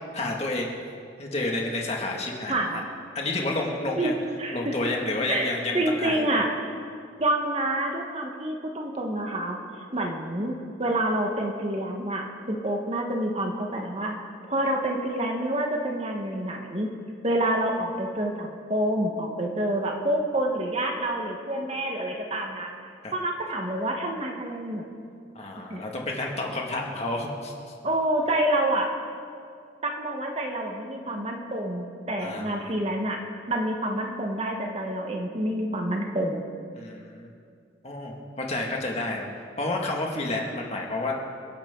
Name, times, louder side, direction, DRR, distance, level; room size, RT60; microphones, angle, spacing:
voice 1, 0.1-0.7 1.2-2.8 3.1-4.1 4.5-6.3 23.0-23.1 25.3-27.7 32.2-32.7 36.8-37.3 37.8-41.1, left 2 dB, 35° left, -1 dB, 2.1 m, -30 dB
voice 2, 2.5-2.9 4.0-4.1 4.4-4.8 5.3-5.5 5.7-6.5 7.2-9.6 9.9-10.5 10.8-14.2 14.5-16.9 17.2-22.7 23.1-24.8 25.7-25.8 27.8-28.9 29.8-33.2 33.5-36.4, right 1 dB, 30° right, 2 dB, 1.4 m, -27 dB
28.0 x 11.5 x 3.9 m, 2.3 s
head